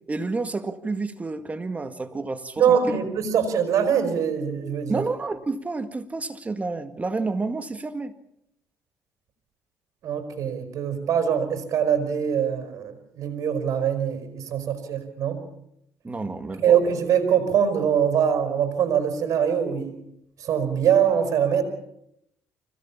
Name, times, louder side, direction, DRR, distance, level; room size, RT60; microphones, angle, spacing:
voice 1, 0.1-3.0 4.9-8.1 16.0-16.8, right 3 dB, 25° right, 1.9 m, -30 dB
voice 2, 2.6-5.0 10.0-15.4 16.6-19.9 20.4-21.6, right 8 dB, 65° right, 5.2 m, -23 dB
25.5 x 17.0 x 7.3 m
cardioid pair, 95°, 6 cm